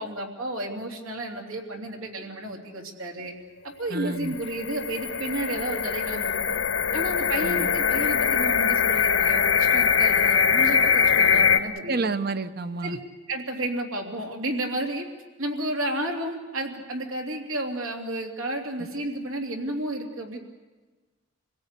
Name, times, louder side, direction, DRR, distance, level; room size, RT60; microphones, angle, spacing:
voice 1, 0.0-3.3 3.6-6.6 6.9-12.1 12.8-13.0 13.3-15.1 15.4-20.4, right 1 dB, 80° right, 1 dB, 3.1 m, -32 dB
voice 2, 3.9-4.3 7.4-7.7 11.9-13.0, right 3 dB, 45° right, 11 dB, 0.9 m, -29 dB
sound 1, 4.2-11.6, left 7 dB, 65° left, 1.2 m, -22 dB
27.5 x 17.5 x 8.3 m, 1.3 s
head